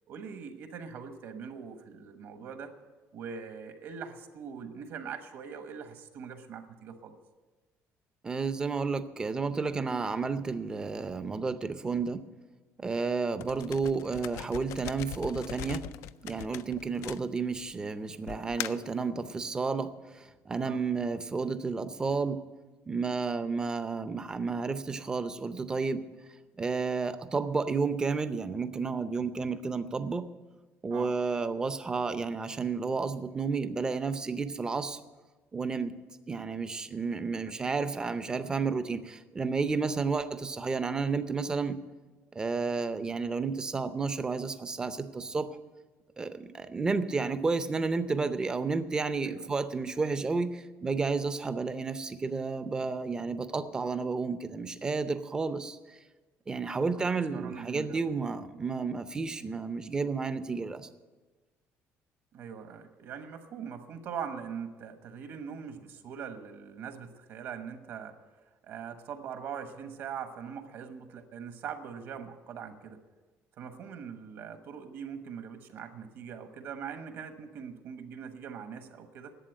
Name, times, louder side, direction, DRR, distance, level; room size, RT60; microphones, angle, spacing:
voice 1, 0.1-2.7 3.1-7.1 20.6-20.8 30.9-31.1 37.5-37.6 37.8-37.9 49.2-49.5 57.1-58.0 62.3-68.2 68.6-73.0 73.6-79.4, right 7 dB, 55° right, 8 dB, 1.1 m, -42 dB
voice 2, 8.2-12.2 12.8-15.8 16.2-22.4 22.9-26.0 26.6-30.3 30.8-35.0 35.5-35.9 36.3-41.8 42.3-45.5 46.2-56.0 56.5-60.9, right 4 dB, 15° right, 11 dB, 0.5 m, -31 dB
sound 1, 13.4-17.7 18.3-18.9, left 12 dB, 70° left, 0.4 m, -40 dB
11.5 x 8.4 x 9.2 m, 1.3 s
cardioid pair, 180°, 5 cm